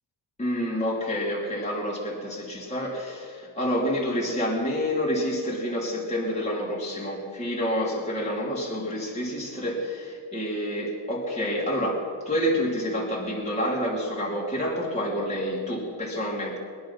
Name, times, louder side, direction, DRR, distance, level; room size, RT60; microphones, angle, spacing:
voice 1, 0.4-16.6, equal, 15° left, -4 dB, 3.1 m, -28 dB
21.5 x 10.0 x 5.8 m, 2.3 s
cardioid pair, 105°, 40 cm